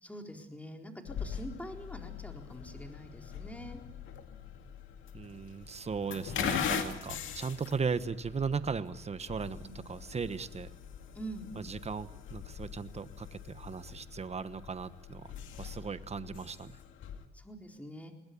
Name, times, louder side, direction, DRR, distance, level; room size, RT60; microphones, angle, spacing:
voice 1, 0.0-3.8 9.6-9.7 11.1-11.5 17.3-18.1, right 1 dB, 5° left, 3 dB, 4.2 m, -45 dB
sound 1, 1.1-17.3, left 8 dB, 80° left, 2.2 m, -41 dB
voice 2, 5.1-10.7 11.5-16.8, right 5 dB, 30° right, 12 dB, 1.2 m, -37 dB
21.0 x 20.0 x 8.6 m, 0.89 s
cardioid pair, 90°, 20 cm